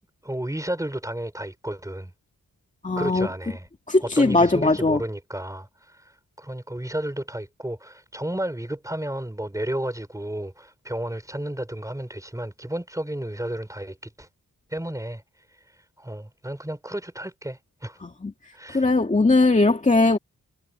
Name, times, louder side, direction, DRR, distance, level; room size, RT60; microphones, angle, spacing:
voice 1, 0.2-2.1 3.0-3.7 4.0-6.0 6.4-14.3 14.7-15.2 16.0-18.0 18.5-18.9, right 1 dB, 10° right, 5.0 m, -32 dB
voice 2, 2.8-3.3 3.9-5.0 18.0-18.3 18.7-20.2, left 2 dB, 20° left, 2.1 m, -19 dB
wide cardioid pair, 130°, 33 cm